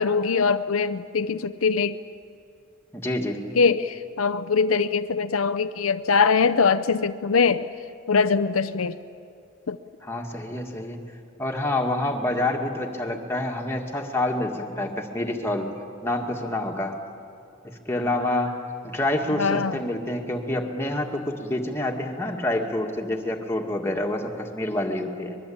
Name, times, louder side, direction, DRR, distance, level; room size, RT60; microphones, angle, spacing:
voice 1, 0.0-2.0 3.5-7.7 8.1-9.0 9.7-9.8 19.4-19.8, left 5 dB, 85° left, 11 dB, 0.6 m, -22 dB
voice 2, 2.9-3.4 10.0-11.0 11.4-15.7 16.0-17.0 17.6-25.4, left 1 dB, 10° left, 1 dB, 2.0 m, -27 dB
24.0 x 21.5 x 8.7 m, 2.5 s
head